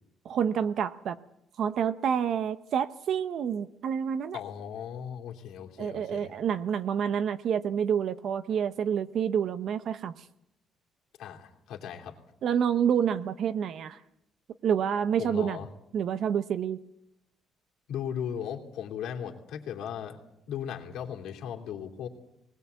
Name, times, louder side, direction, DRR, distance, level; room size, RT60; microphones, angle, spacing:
voice 1, 0.2-1.2 1.6-4.4 5.8-10.1 12.4-14.0 14.6-15.6 15.9-16.8, right 8 dB, 50° right, 12 dB, 0.8 m, -28 dB
voice 2, 4.3-6.3 11.2-12.1 15.2-15.7 17.9-20.2 20.5-22.1, left 8 dB, 75° left, 1 dB, 3.0 m, -37 dB
20.0 x 20.0 x 8.3 m, 0.80 s
cardioid pair, 155°, 0 cm